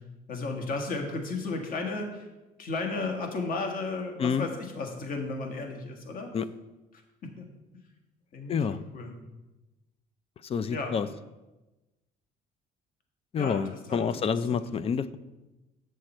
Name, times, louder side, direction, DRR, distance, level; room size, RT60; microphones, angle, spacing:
voice 1, 0.3-2.3 2.6-6.3 7.4-7.5 8.3-9.3 10.7-11.0 13.4-14.7, left 3 dB, 55° left, 3 dB, 1.6 m, -34 dB
voice 2, 10.4-11.1 13.3-15.2, left 6 dB, 35° left, 15 dB, 0.4 m, -28 dB
8.0 x 6.4 x 4.3 m, 1.1 s
cardioid pair, 110°, 17 cm